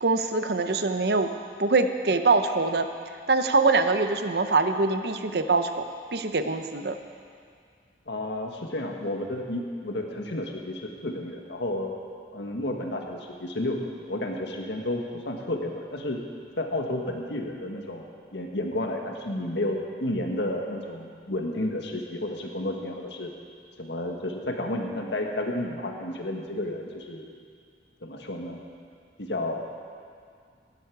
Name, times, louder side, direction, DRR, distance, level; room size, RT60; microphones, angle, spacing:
voice 1, 0.0-1.3 1.6-2.9 3.3-5.8 6.1-7.0, right 3 dB, 60° right, 8 dB, 0.8 m, -23 dB
voice 2, 8.1-12.0 12.3-16.2 16.6-18.1 18.3-23.3 23.8-27.3 28.0-28.6 29.2-29.6, left 1 dB, 75° left, 1 dB, 1.6 m, -31 dB
17.0 x 11.5 x 4.8 m, 2.2 s
head